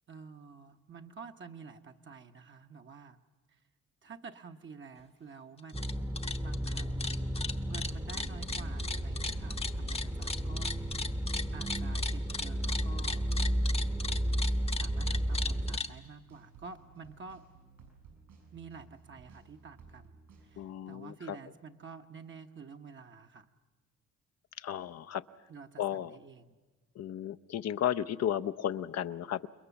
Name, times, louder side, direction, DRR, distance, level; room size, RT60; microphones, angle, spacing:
voice 1, 0.1-3.2 3.5-3.6 4.0-7.1 7.6-10.7 11.5-13.8 14.8-17.4 18.5-23.5 25.5-26.6, right 5 dB, 40° right, 5 dB, 1.0 m, -50 dB
sound 1, 5.6-5.9 6.2-15.9, left 3 dB, 20° left, 0.9 m, -37 dB
sound 2, 5.7-15.8, equal, 10° right, 0.9 m, -33 dB
sound 3, 8.7-20.7, right 5 dB, 80° right, 6.7 m, -58 dB
voice 2, 20.6-21.4 24.6-25.2 25.8-26.2 27.0-29.5, left 10 dB, 55° left, 12 dB, 0.7 m, -34 dB
28.5 x 21.5 x 7.0 m, 1.3 s
cardioid pair, 90°, 30 cm